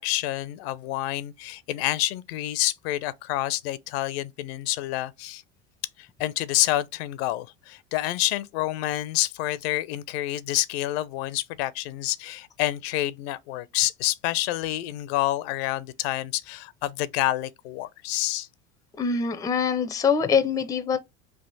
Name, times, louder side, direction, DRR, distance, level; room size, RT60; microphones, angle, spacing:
voice 1, 0.0-5.4 6.0-18.5, left 15 dB, 65° left, 0.5 m, -28 dB
voice 2, 19.0-21.0, left 6 dB, 10° left, 0.4 m, -24 dB
3.4 x 2.5 x 3.9 m
hypercardioid pair, 85°, 34 cm